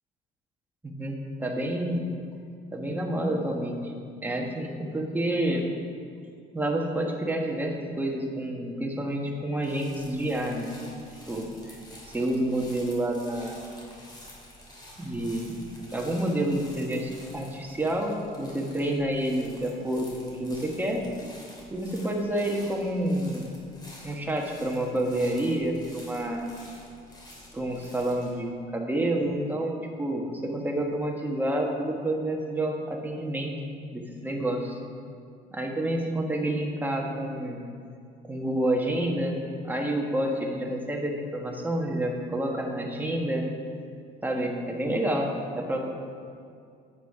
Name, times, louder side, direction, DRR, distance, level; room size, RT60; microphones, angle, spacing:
voice 1, 0.8-2.1 2.7-3.9 4.2-5.7 6.5-10.7 11.3-11.8 12.0-13.6 15.0-15.6 15.9-21.0 21.7-23.5 24.0-26.5 27.5-33.5 33.9-34.8 35.5-37.6 38.2-39.4 39.6-43.5 44.2-45.9, right 1 dB, 10° right, 0 dB, 1.4 m, -29 dB
sound 1, 9.6-28.3, left 1 dB, 25° left, 2.8 m, -49 dB
9.3 x 8.5 x 4.8 m, 2.4 s
cardioid pair, 110°, 17 cm